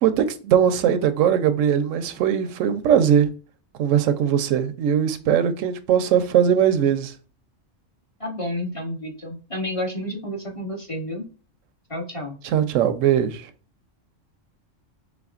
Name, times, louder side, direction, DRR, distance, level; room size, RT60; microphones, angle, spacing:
voice 1, 0.0-3.3 3.8-7.1 12.4-13.5, right 9 dB, 85° right, 0.9 m, -20 dB
voice 2, 8.2-11.3 11.9-12.4, left 1 dB, 30° left, 0.9 m, -30 dB
4.2 x 3.5 x 2.4 m
omnidirectional pair, 1.3 m